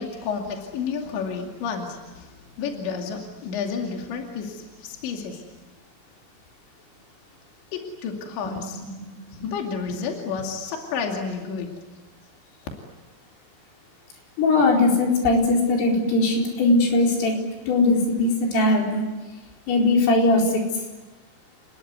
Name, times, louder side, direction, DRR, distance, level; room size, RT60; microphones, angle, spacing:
voice 1, 0.0-2.3 2.6-5.4 7.7-8.8 9.4-11.7, left 5 dB, 65° left, 1 dB, 4.6 m, -31 dB
voice 2, 14.4-17.4 17.7-19.0 19.7-20.6, left 2 dB, 85° left, 0 dB, 7.0 m, -20 dB
30.0 x 20.0 x 9.5 m, 1.2 s
omnidirectional pair, 5.7 m